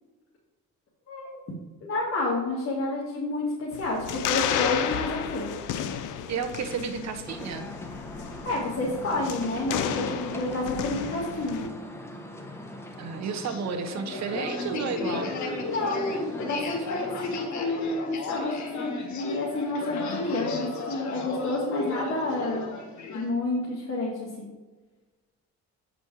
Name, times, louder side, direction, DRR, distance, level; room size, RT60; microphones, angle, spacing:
voice 1, 1.8-5.5 8.4-11.7 15.6-22.7 23.1-24.5, left 2 dB, 45° left, -4 dB, 1.9 m, -29 dB
sound 1, 3.7-11.7, left 9 dB, 85° left, 0.7 m, -33 dB
voice 2, 6.3-7.7 13.0-15.3, right 6 dB, 65° right, 8 dB, 1.0 m, -32 dB
sound 2, 7.3-17.5, left 1 dB, 10° left, 1.2 m, -41 dB
sound 3, 13.4-23.3, left 3 dB, 70° left, 1.6 m, -34 dB
7.9 x 5.2 x 4.7 m, 1.3 s
cardioid pair, 90°, 30 cm